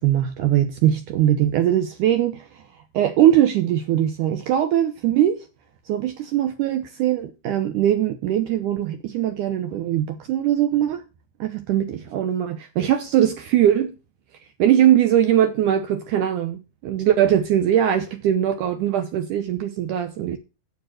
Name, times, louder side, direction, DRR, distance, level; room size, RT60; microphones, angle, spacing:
voice 1, 0.0-2.4 2.9-5.4 5.9-11.0 11.4-14.0 14.6-20.4, right 11 dB, 75° right, 1.9 m, -21 dB
7.4 x 7.1 x 7.7 m
omnidirectional pair, 4.5 m